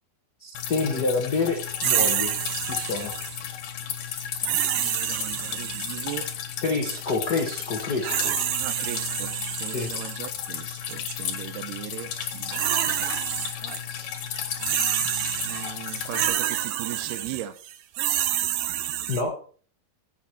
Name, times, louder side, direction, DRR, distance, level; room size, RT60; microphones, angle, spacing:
voice 1, 0.4-2.3 2.7-3.1 6.6-8.6 9.7-9.9 19.1-19.3, left 3 dB, 85° left, 2 dB, 0.8 m, -27 dB
Drip, 0.5-16.3, left 9 dB, 65° left, 2.6 m, -34 dB
sound 1, 1.8-3.4 4.4-6.3 7.7-10.2 10.9-11.2 12.2-13.8 14.1-19.2, right 12 dB, 75° right, 2.4 m, -28 dB
voice 2, 4.8-6.3 8.6-9.3 9.6-13.0 15.4-17.5, right 13 dB, 90° right, 10 dB, 2.9 m, -38 dB
15.5 x 7.0 x 4.5 m, 0.43 s
omnidirectional pair, 4.5 m